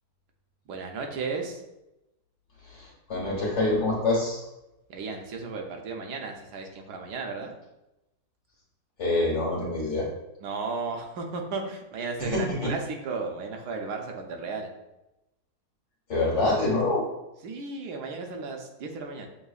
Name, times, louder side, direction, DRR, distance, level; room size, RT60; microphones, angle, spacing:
voice 1, 0.7-1.6 4.9-7.5 10.4-14.7 17.4-19.3, right 4 dB, 85° right, 3 dB, 1.2 m, -34 dB
voice 2, 2.6-4.4 9.0-10.1 12.2-12.7 16.1-17.0, left 2 dB, 45° left, -5 dB, 1.5 m, -26 dB
6.6 x 2.3 x 2.4 m, 0.92 s
omnidirectional pair, 1.7 m